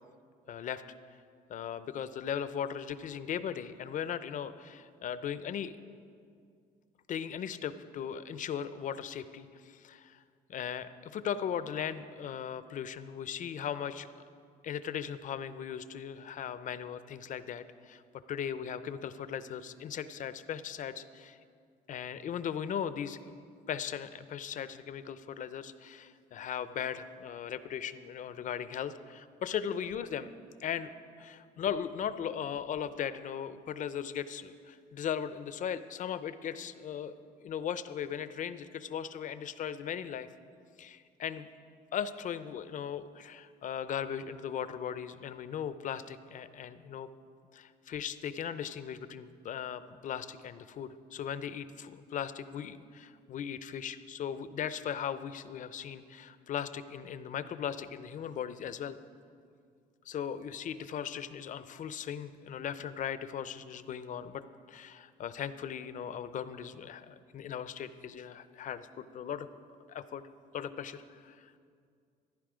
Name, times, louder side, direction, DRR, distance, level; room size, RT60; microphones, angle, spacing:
voice 1, 0.5-0.8 1.5-5.8 7.1-10.2 10.5-14.2 14.6-18.0 18.3-21.4 21.9-23.2 23.7-30.3 30.6-30.9 31.2-37.1 37.4-40.3 40.8-41.5 41.9-47.1 47.5-59.0 60.1-64.4 64.7-69.5 69.9-70.2 70.5-71.5, left 8 dB, 50° left, 13 dB, 0.6 m, -38 dB
14.0 x 11.5 x 5.0 m, 2.2 s
cardioid pair, 110°, 17 cm